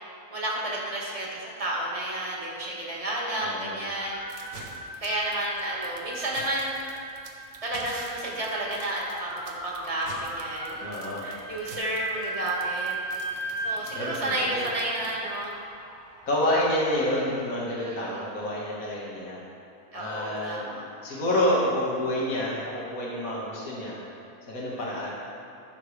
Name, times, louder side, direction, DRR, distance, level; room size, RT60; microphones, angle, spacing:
voice 1, 0.3-4.2 5.0-6.8 7.6-10.8 11.2-12.9 13.6-15.5 17.6-18.2 19.9-20.9 24.8-25.1, right 1 dB, 25° right, -4 dB, 1.8 m, -31 dB
voice 2, 3.4-3.8 10.8-11.3 13.9-14.7 16.3-19.4 19.9-20.7 21.0-24.0 24.5-25.1, left 1 dB, 70° left, -6 dB, 2.2 m, -28 dB
sound 1, 4.0-17.0, right 3 dB, 40° right, 1.1 m, -38 dB
sound 2, 4.3-15.5, right 4 dB, 65° right, 1.3 m, -46 dB
15.0 x 6.6 x 3.3 m, 2.7 s
omnidirectional pair, 1.5 m